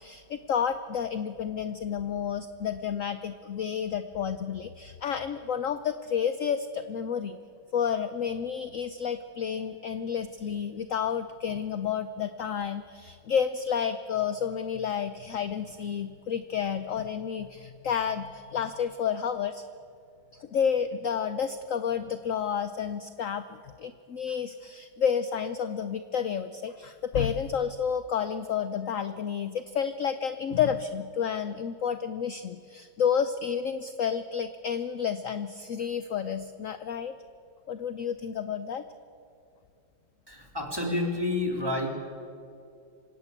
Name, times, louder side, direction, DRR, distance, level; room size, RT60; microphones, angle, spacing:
voice 1, 0.0-7.4 7.7-19.6 20.3-37.1 37.7-38.8, left 7 dB, 60° left, 11 dB, 0.8 m, -30 dB
voice 2, 40.3-41.9, left 2 dB, 10° right, 1 dB, 3.4 m, -29 dB
26.0 x 17.5 x 8.3 m, 2.4 s
omnidirectional pair, 2.2 m